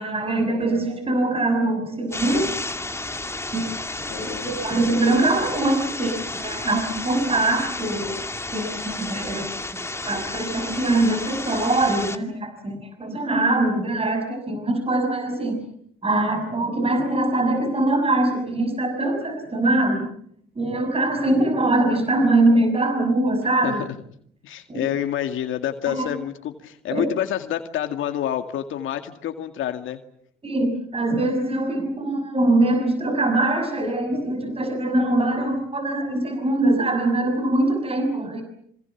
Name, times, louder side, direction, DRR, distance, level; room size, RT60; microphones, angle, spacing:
voice 1, 0.0-2.5 3.5-8.2 8.5-9.5 10.0-15.6 16.0-20.1 20.5-23.8 24.7-24.8 25.9-26.1 26.9-27.1 30.4-38.4, right 2 dB, 30° right, 6 dB, 6.7 m, -23 dB
sound 1, 2.1-12.2, left 2 dB, 15° left, 2.4 m, -32 dB
voice 2, 4.1-4.5 23.6-23.7 24.4-30.0, left 10 dB, 80° left, 6 dB, 2.2 m, -28 dB
26.5 x 26.0 x 7.3 m, 0.68 s
cardioid pair, 90°, 20 cm